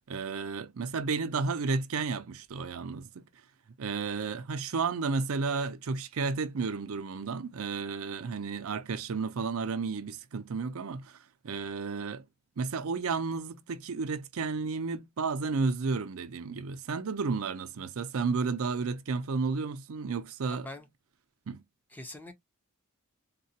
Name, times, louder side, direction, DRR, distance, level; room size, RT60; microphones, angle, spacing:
voice 1, 0.1-3.2 3.8-12.3 12.6-20.7 21.5-21.6, right 4 dB, 70° right, 0.5 m, -32 dB
voice 2, 20.5-20.9 21.9-22.3, left 1 dB, 10° left, 0.5 m, -43 dB
3.9 x 2.2 x 2.7 m
head